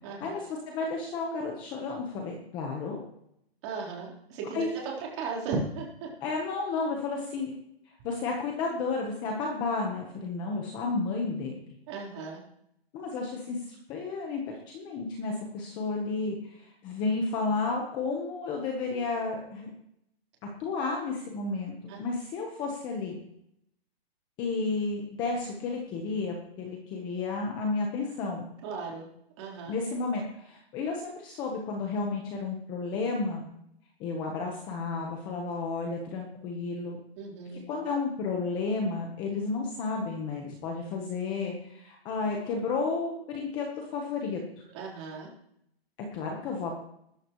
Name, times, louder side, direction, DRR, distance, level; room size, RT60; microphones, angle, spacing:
voice 1, 0.0-0.4 3.6-6.1 11.9-12.4 21.9-22.0 28.6-29.1 29.4-29.7 37.2-37.6 44.7-45.3, right 4 dB, 25° right, -2 dB, 4.1 m, -36 dB
voice 2, 0.7-3.0 4.5-4.7 6.2-7.6 8.0-11.6 12.9-19.7 20.6-21.7 22.0-23.1 24.4-28.4 29.7-33.5 34.0-37.0 37.7-44.6 46.1-46.7, left 4 dB, 15° left, 1 dB, 1.2 m, -32 dB
20.0 x 13.5 x 3.2 m, 0.77 s
hypercardioid pair, 170°, 31 cm